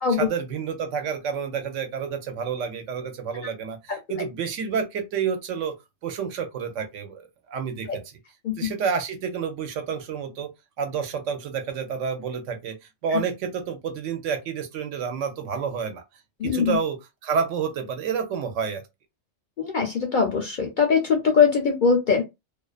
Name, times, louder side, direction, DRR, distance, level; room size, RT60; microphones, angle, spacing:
voice 1, 0.2-5.7 6.0-8.0 8.6-10.5 10.8-12.8 13.0-16.0 16.4-18.8, right 6 dB, 75° right, 1.0 m, -29 dB
voice 2, 16.4-16.8 19.6-22.2, left 5 dB, 55° left, 0.5 m, -21 dB
2.3 x 2.3 x 2.3 m
omnidirectional pair, 1.3 m